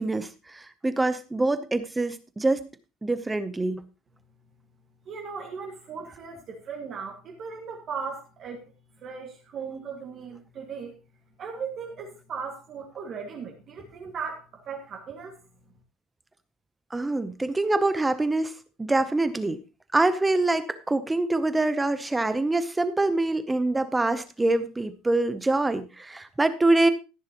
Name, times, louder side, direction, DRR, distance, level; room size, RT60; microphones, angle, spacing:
voice 1, 0.0-2.7 3.0-3.8 16.9-18.5 18.8-19.6 19.9-26.9, right 2 dB, 5° right, 12 dB, 0.8 m, -25 dB
voice 2, 5.1-8.7 9.0-11.0 11.4-15.4, right 5 dB, 30° right, 0 dB, 2.0 m, -37 dB
14.5 x 10.0 x 3.0 m, 0.30 s
cardioid pair, 180°, 0 cm